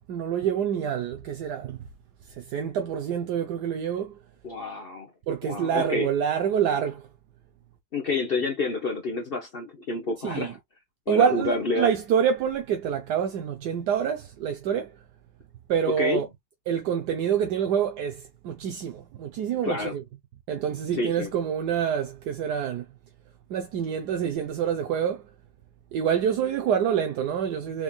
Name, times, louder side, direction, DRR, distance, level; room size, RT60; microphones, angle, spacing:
voice 1, 0.1-1.8 2.3-4.2 5.3-7.1 10.2-10.5 11.1-15.0 15.7-16.3 16.7-20.0 20.5-22.9 23.5-25.2 25.9-27.8, right 8 dB, 65° right, 1.1 m, -26 dB
voice 2, 4.4-5.1 5.4-6.1 7.9-10.6 11.1-11.9 15.9-16.2 19.6-20.0 20.9-21.3, left 3 dB, 75° left, 0.5 m, -28 dB
4.9 x 3.5 x 2.3 m
omnidirectional pair, 2.2 m